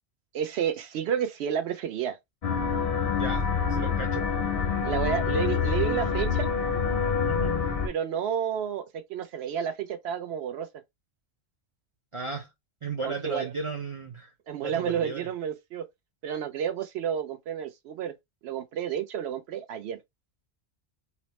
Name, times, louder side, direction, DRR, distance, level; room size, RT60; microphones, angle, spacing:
voice 1, 0.3-2.2 4.8-6.5 7.8-10.7 13.0-13.5 14.5-15.8 16.2-18.1 18.4-20.0, right 8 dB, 75° right, 0.8 m, -30 dB
sound 1, 2.4-7.9, left 6 dB, 50° left, 0.5 m, -26 dB
voice 2, 3.1-4.3 7.3-7.6 12.1-12.5 12.8-14.3 14.6-15.2, right 4 dB, 45° right, 0.4 m, -35 dB
2.8 x 2.0 x 3.0 m
omnidirectional pair, 1.2 m